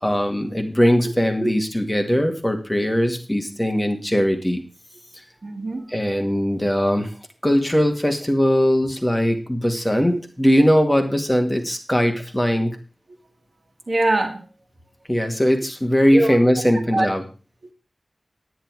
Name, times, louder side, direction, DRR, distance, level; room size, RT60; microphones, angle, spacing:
voice 1, 0.0-4.7 5.9-7.1 7.4-12.8 15.1-17.2, equal, 10° left, 4 dB, 2.1 m, -20 dB
voice 2, 5.4-5.9 10.1-10.2 12.5-12.7 13.9-14.5 16.1-16.4 16.9-17.1, right 2 dB, 60° right, 5 dB, 2.0 m, -23 dB
10.0 x 10.0 x 4.7 m, 0.33 s
wide cardioid pair, 75°, 0 cm